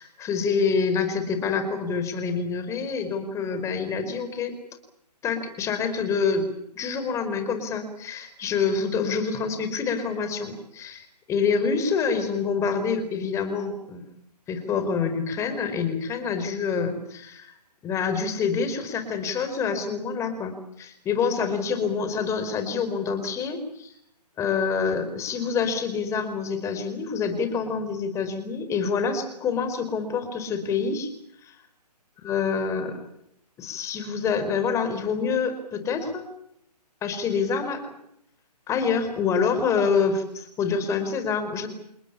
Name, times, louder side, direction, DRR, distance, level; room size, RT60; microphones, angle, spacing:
voice 1, 0.0-4.5 5.2-6.5 6.7-14.0 14.5-17.5 17.8-23.9 24.4-31.1 31.4-31.6 32.2-33.0 33.6-36.2 37.0-37.8 38.7-41.7, left 5 dB, 15° left, 9 dB, 4.7 m, -26 dB
29.0 x 19.5 x 8.6 m, 0.74 s
hypercardioid pair, 150°, 21 cm